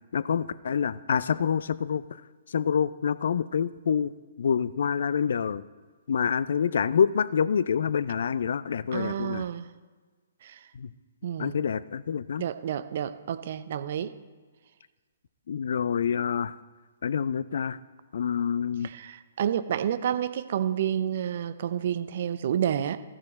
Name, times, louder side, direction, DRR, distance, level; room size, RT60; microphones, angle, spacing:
voice 1, 0.1-2.0 2.5-4.1 4.4-5.6 6.1-9.5 10.7-10.9 11.4-12.4 15.5-16.6 17.0-17.8 18.1-18.9, left 7 dB, 60° left, 16 dB, 0.4 m, -27 dB
voice 2, 8.9-9.7 10.4-10.6 11.2-11.6 12.4-14.1 18.8-23.0, right 9 dB, 50° right, 14 dB, 0.5 m, -30 dB
14.5 x 6.4 x 4.1 m, 1.4 s
figure-of-eight pair, 125°, 0 cm